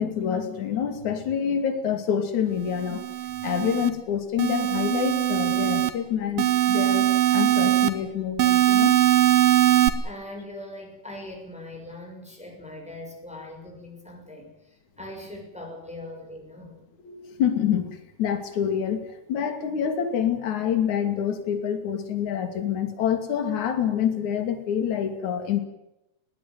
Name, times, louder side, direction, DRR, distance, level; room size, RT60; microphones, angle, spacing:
voice 1, 0.0-3.0 3.4-9.0 17.0-25.6, left 8 dB, 60° left, 8 dB, 3.9 m, -27 dB
sound 1, 2.8-3.9 4.4-5.9 6.4-7.9 8.4-9.9, right 13 dB, 85° right, 3.3 m, -21 dB
voice 2, 10.0-16.8, left 1 dB, ahead, 1 dB, 6.4 m, -41 dB
21.0 x 18.0 x 9.5 m, 0.89 s
omnidirectional pair, 4.0 m